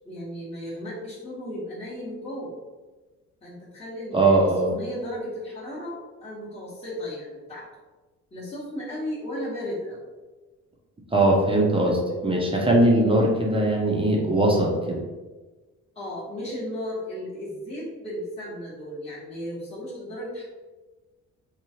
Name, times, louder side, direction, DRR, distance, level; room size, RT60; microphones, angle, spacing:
voice 1, 0.0-2.5 3.4-7.7 8.3-10.0 15.9-20.4, left 1 dB, 20° left, -9 dB, 1.0 m, -35 dB
voice 2, 4.1-4.7 11.1-15.0, right 1 dB, 20° right, -2 dB, 0.6 m, -20 dB
3.0 x 2.3 x 2.7 m, 1.3 s
cardioid pair, 90°, 30 cm